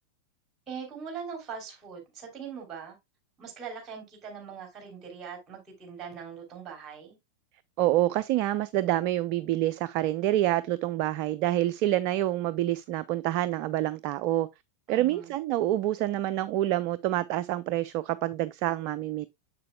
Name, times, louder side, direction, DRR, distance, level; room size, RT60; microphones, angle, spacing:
voice 1, 0.7-3.0 3.4-7.2 14.9-15.3, right 6 dB, 25° right, 3.3 m, -41 dB
voice 2, 7.8-14.5 14.9-19.3, right 14 dB, 45° right, 0.3 m, -27 dB
7.4 x 6.7 x 2.3 m
figure-of-eight pair, 90°, 0 cm